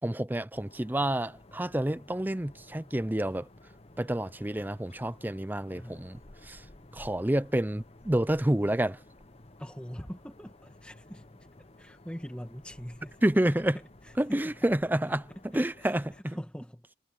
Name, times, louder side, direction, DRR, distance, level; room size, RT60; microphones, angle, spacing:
voice 1, 0.0-3.5 4.0-6.6 6.9-9.0 13.2-13.8 14.2-15.2 15.5-16.4, right 1 dB, 10° right, 0.5 m, -29 dB
sound 1, 0.5-16.2, left 1 dB, 30° left, 1.0 m, -54 dB
voice 2, 5.7-6.1 9.6-11.3 11.6-13.2 13.5-14.7 15.1-16.9, equal, 5° left, 1.9 m, -43 dB
head